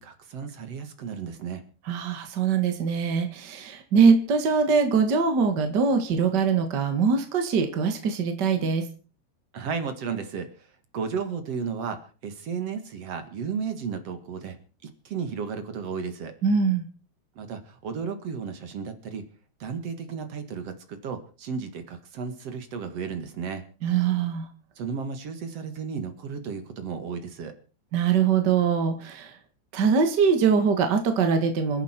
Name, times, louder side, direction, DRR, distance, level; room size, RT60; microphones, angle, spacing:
voice 1, 0.0-1.7 9.5-10.7 10.9-16.3 17.4-19.2 19.6-23.6 24.8-27.5, right 6 dB, 50° right, 8 dB, 2.1 m, -34 dB
voice 2, 1.9-8.8 16.4-16.8 23.8-24.5 27.9-29.3 29.7-31.8, right 6 dB, 70° right, 6 dB, 1.0 m, -22 dB
27.0 x 10.5 x 4.5 m, 0.38 s
omnidirectional pair, 5.0 m